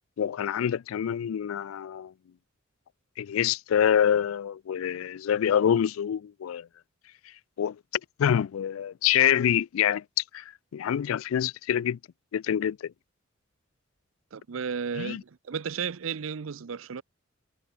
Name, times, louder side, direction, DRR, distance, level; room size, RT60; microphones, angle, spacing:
voice 1, 0.2-2.1 3.2-6.7 7.6-7.8 8.2-10.0 10.3-10.4 10.7-12.0 12.3-12.9 15.0-15.2, left 9 dB, 85° left, 0.3 m, -26 dB
voice 2, 14.3-17.0, right 6 dB, 75° right, 0.6 m, -33 dB
head